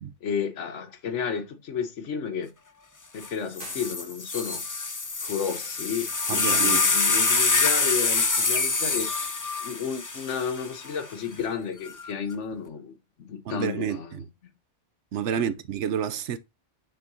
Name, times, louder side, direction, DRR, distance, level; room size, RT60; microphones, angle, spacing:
voice 1, 0.2-2.5 3.1-4.6 5.2-9.1 9.6-14.5 15.3-15.5, left 6 dB, 70° left, 1.2 m, -32 dB
sound 1, 3.2-3.3 3.6-11.0 11.9-12.3, left 3 dB, 30° left, 0.3 m, -25 dB
sound 2, 3.5-4.6, right 2 dB, 45° right, 2.6 m, -48 dB
voice 2, 6.3-6.8 13.4-14.3 15.1-16.4, right 8 dB, 70° right, 0.9 m, -29 dB
6.4 x 6.3 x 2.7 m
omnidirectional pair, 1.3 m